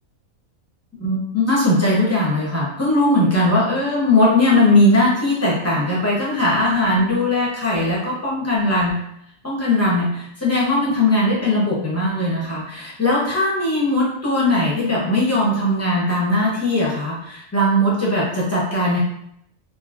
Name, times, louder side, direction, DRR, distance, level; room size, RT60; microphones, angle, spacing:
voice 1, 1.0-9.0 9.4-19.0, left 1 dB, 15° left, -7 dB, 0.7 m, -19 dB
3.1 x 2.7 x 2.4 m, 0.76 s
omnidirectional pair, 1.5 m